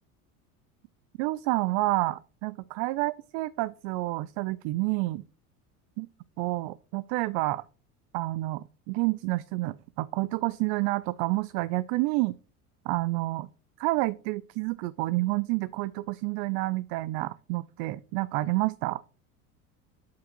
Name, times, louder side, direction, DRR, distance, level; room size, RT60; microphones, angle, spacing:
voice 1, 1.2-5.2 6.0-6.1 6.4-7.6 8.1-12.3 12.9-13.5 13.8-19.0, right 20 dB, 55° right, 0.5 m, -29 dB
7.0 x 5.0 x 4.4 m
hypercardioid pair, 80°, 44 cm